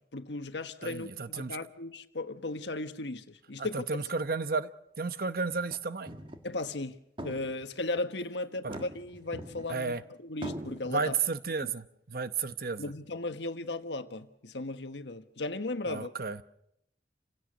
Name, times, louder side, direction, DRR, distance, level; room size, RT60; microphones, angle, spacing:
voice 1, 0.1-4.0 6.4-7.0 7.2-9.9 10.2-11.1 12.8-16.1, left 2 dB, 90° left, 1.4 m, -36 dB
voice 2, 0.8-1.6 3.6-4.7 5.0-6.1 8.6-8.8 9.7-10.0 10.8-12.9 15.8-16.4, right 4 dB, 55° right, 0.9 m, -33 dB
sound 1, 5.5-5.8 6.1-6.5 6.8-6.9 7.2-8.0 8.6-10.0 10.4-10.8, right 1 dB, 30° right, 1.6 m, -42 dB
29.0 x 16.5 x 6.4 m
head